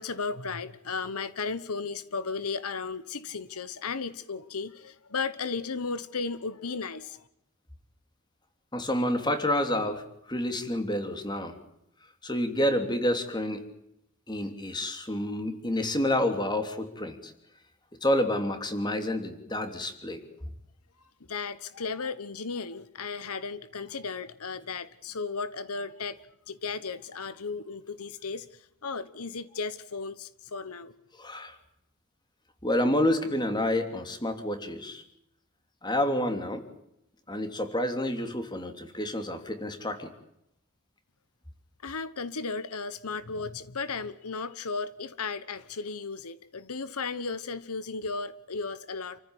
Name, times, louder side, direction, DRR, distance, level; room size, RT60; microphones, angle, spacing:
voice 1, 0.0-7.3 21.3-26.2 26.5-30.9 41.8-49.2, left 4 dB, 85° left, 1.2 m, -35 dB
voice 2, 8.7-10.0 10.3-11.5 12.2-13.6 14.3-17.3 18.0-20.2 31.2-31.5 32.6-35.0 35.8-36.6 37.3-40.1, left 1 dB, 20° left, 3.1 m, -29 dB
29.0 x 15.0 x 10.0 m
head